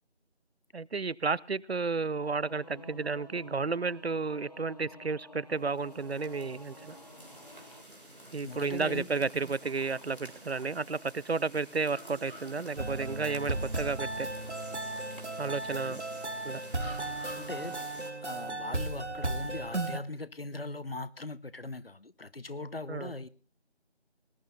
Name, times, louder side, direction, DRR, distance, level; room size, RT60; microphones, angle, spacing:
voice 1, 0.7-6.9 8.3-14.3 15.4-16.0 16.4-16.6 22.9-23.1, right 4 dB, 65° right, 0.6 m, -32 dB
Singing / Musical instrument, 2.2-7.8, left 1 dB, 40° left, 1.2 m, -51 dB
sound 1, 5.6-18.1, right 1 dB, 50° right, 3.4 m, -49 dB
voice 2, 8.4-9.1 15.8-16.0 17.3-17.8 18.2-23.3, left 2 dB, 60° left, 0.9 m, -40 dB
sound 2, 12.8-20.0, right 2 dB, 90° right, 1.6 m, -35 dB
19.5 x 11.0 x 4.0 m
figure-of-eight pair, 175°, 33 cm